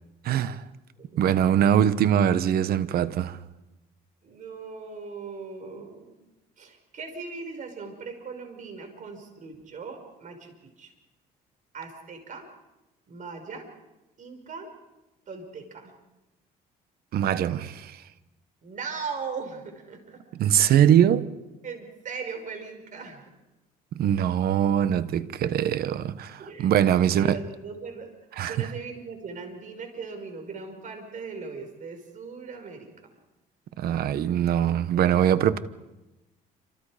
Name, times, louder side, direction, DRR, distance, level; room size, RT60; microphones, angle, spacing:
voice 1, 0.2-0.6 1.1-3.4 17.1-18.0 20.4-21.3 23.9-27.4 28.4-28.7 33.8-35.6, right 10 dB, 65° right, 1.2 m, -22 dB
voice 2, 1.0-1.5 4.2-6.2 6.6-10.9 11.7-12.5 13.1-13.7 14.2-14.7 15.3-15.9 18.6-20.2 21.6-23.3 26.4-28.1 28.5-33.1, right 4 dB, 50° right, 5.7 m, -39 dB
28.0 x 27.0 x 5.1 m
cardioid pair, 110°, 17 cm